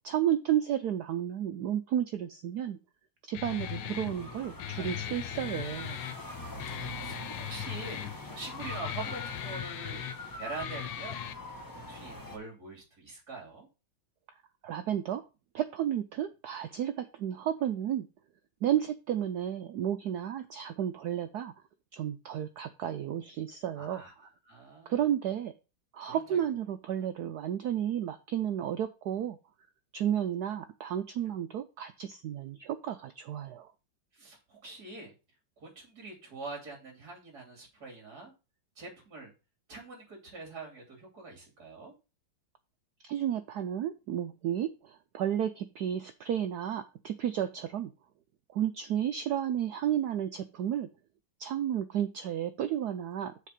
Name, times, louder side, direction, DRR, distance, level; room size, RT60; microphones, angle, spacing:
voice 1, 0.0-2.8 3.2-6.0 14.6-15.2 15.5-18.1 18.6-21.5 21.9-24.0 24.9-25.5 25.9-29.4 29.9-33.7 43.0-47.9 48.5-50.9 51.4-53.5, right 10 dB, 75° right, 9 dB, 0.9 m, -32 dB
Guitar, 3.3-11.3, left 12 dB, 75° left, 1.3 m, -39 dB
sound 1, 3.4-12.4, left 1 dB, 15° left, 0.8 m, -43 dB
voice 2, 6.7-10.1 10.4-11.2 11.7-13.7 23.8-25.0 26.0-26.4 34.1-35.1 35.6-38.3 38.8-39.3 39.7-41.9, right 3 dB, 45° right, 0 dB, 3.5 m, -44 dB
6.6 x 4.3 x 6.5 m, 0.30 s
omnidirectional pair, 2.3 m